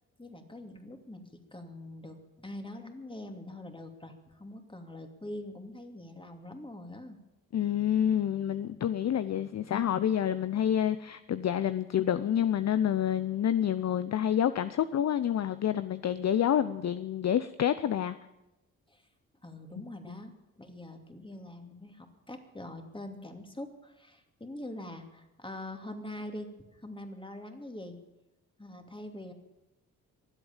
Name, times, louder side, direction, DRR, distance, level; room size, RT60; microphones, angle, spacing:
voice 1, 0.2-1.2 1.5-7.2 18.9-19.0 19.4-28.0 28.6-29.3, left 1 dB, 10° left, 5 dB, 2.7 m, -44 dB
voice 2, 7.5-18.2, left 10 dB, 40° left, 14 dB, 0.7 m, -28 dB
23.5 x 8.0 x 7.2 m, 0.98 s
hypercardioid pair, 40°, 41 cm